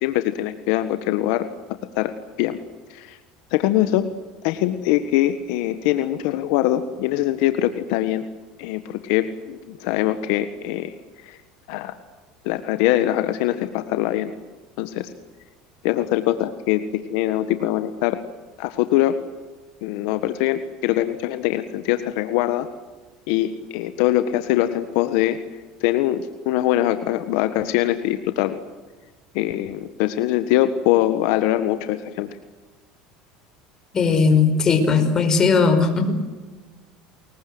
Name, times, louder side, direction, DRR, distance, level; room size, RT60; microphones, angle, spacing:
voice 1, 0.0-1.4 1.9-2.1 2.4-2.6 2.9-3.2 3.5-4.1 4.4-8.2 8.6-10.9 11.2-11.4 11.7-12.0 12.4-14.3 14.8-15.1 15.8-18.2 18.6-19.2 19.8-22.7 23.3-25.4 25.8-28.6 29.3-32.3, left 13 dB, 75° left, 10 dB, 1.6 m, -22 dB
voice 2, 33.9-36.1, left 4 dB, 25° left, 7 dB, 5.3 m, -18 dB
29.5 x 22.0 x 8.0 m, 1.3 s
supercardioid pair, 125°, 2 cm